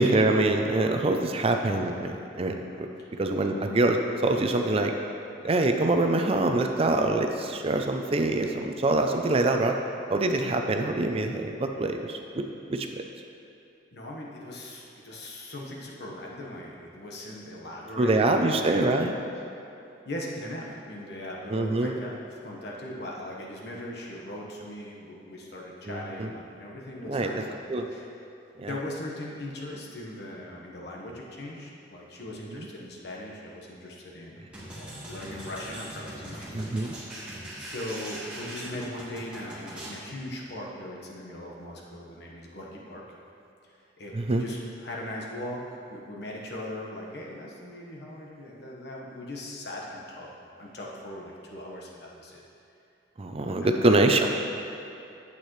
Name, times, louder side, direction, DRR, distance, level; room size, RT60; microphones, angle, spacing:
voice 1, 0.0-2.9 3.2-4.9 5.4-9.8 10.1-12.4 12.7-12.9 18.0-19.1 21.5-21.9 25.9-26.3 27.1-27.4 27.7-27.9 28.6-28.7 32.5-32.7 36.5-36.9 44.1-44.4 53.2-54.3, right 2 dB, 30° right, 4 dB, 0.5 m, -25 dB
voice 2, 13.9-18.9 20.0-27.6 27.9-28.1 28.6-36.7 37.5-43.0 43.7-45.6 45.9-50.3 50.6-52.4 53.6-54.0, left 1 dB, 65° left, -3 dB, 1.3 m, -39 dB
sound 1, 34.5-40.0, right 1 dB, 5° right, 1.6 m, -41 dB
9.0 x 8.3 x 3.2 m, 2.8 s
head